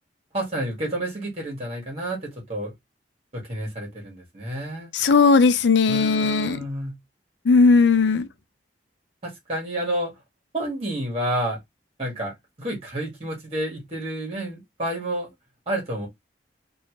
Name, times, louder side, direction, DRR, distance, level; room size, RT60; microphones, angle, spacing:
voice 1, 0.3-2.7 3.3-4.9 5.9-7.0 9.2-10.1 10.5-11.6 12.0-15.3 15.7-16.1, right 1 dB, 35° right, 1.6 m, -30 dB
voice 2, 4.9-6.6 7.5-8.3, left 4 dB, 80° left, 0.5 m, -17 dB
3.1 x 2.7 x 3.1 m
head